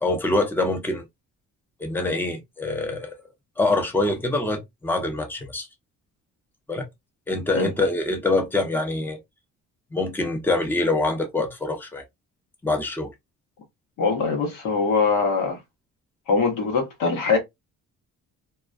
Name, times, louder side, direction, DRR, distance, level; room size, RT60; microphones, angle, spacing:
voice 1, 0.0-1.0 1.8-3.2 3.6-5.7 6.7-6.9 7.3-9.2 9.9-12.0 12.6-13.1, left 2 dB, 5° left, 0.6 m, -25 dB
voice 2, 14.0-15.6 16.3-17.4, left 4 dB, 90° left, 1.0 m, -22 dB
2.4 x 2.1 x 2.4 m
cardioid pair, 90°, 30 cm